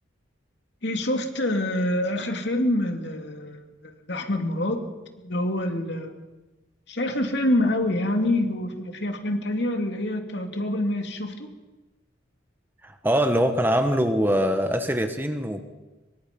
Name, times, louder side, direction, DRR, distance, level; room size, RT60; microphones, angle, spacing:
voice 1, 0.8-4.8 5.2-6.1 6.9-11.5, left 1 dB, 60° left, 4 dB, 2.7 m, -26 dB
voice 2, 12.8-15.6, equal, 10° right, 6 dB, 1.3 m, -23 dB
25.5 x 23.5 x 5.4 m, 1.1 s
head